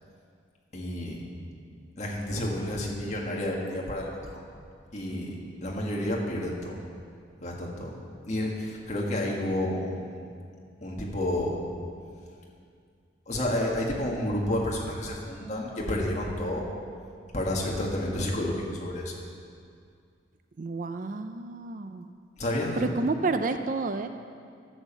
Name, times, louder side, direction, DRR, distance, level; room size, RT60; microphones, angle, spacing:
voice 1, 0.7-1.2 2.0-4.4 4.9-6.8 7.4-8.0 8.3-10.3 10.8-11.6 13.3-16.7 17.3-19.2 22.4-23.0, left 1 dB, 35° left, -2 dB, 1.8 m, -30 dB
voice 2, 20.6-22.1 22.8-24.1, right 3 dB, 45° right, 8 dB, 0.4 m, -30 dB
11.5 x 7.3 x 7.3 m, 2.3 s
head